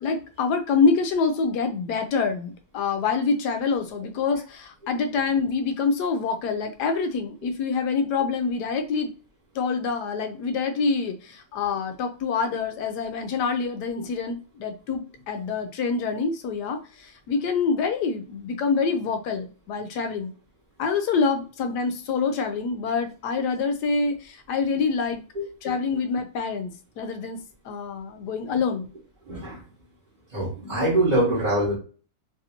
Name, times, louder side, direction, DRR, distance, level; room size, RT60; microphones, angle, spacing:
voice 1, 0.0-9.1 9.5-20.3 20.8-25.2 25.6-26.7 27.0-27.4 27.6-28.9, left 5 dB, 70° left, 6 dB, 1.0 m, -26 dB
voice 2, 25.4-25.7 29.3-29.6 30.3-31.8, right 1 dB, 30° right, -7 dB, 0.9 m, -24 dB
3.4 x 2.6 x 2.7 m, 0.37 s
omnidirectional pair, 2.1 m